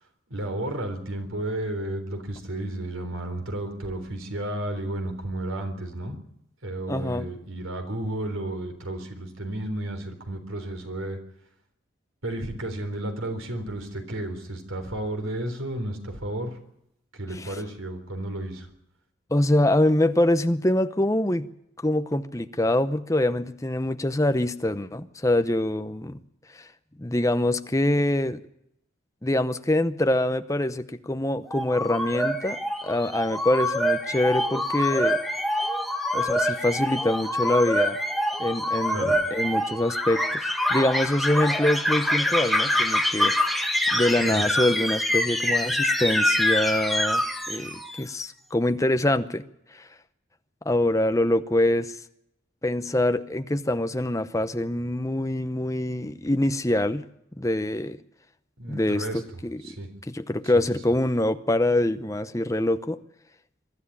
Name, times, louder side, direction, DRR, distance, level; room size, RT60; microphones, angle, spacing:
voice 1, 0.3-6.2 6.6-11.2 12.2-16.6 17.1-18.7 38.9-39.2 44.2-44.5 58.6-59.2 59.6-59.9 60.5-60.6, right 1 dB, 90° right, 3.7 m, -32 dB
voice 2, 6.9-7.3 17.4-17.6 19.3-21.5 21.8-26.2 26.5-26.7 27.0-28.4 29.2-35.2 36.1-38.0 38.4-43.3 43.9-49.4 49.7-49.9 50.6-52.0 52.6-57.1 57.4-58.0 58.7-59.6 60.1-63.0, left 1 dB, 15° left, 0.8 m, -25 dB
sound 1, 31.5-48.0, left 1 dB, ahead, 1.4 m, -25 dB
23.5 x 12.5 x 9.9 m
head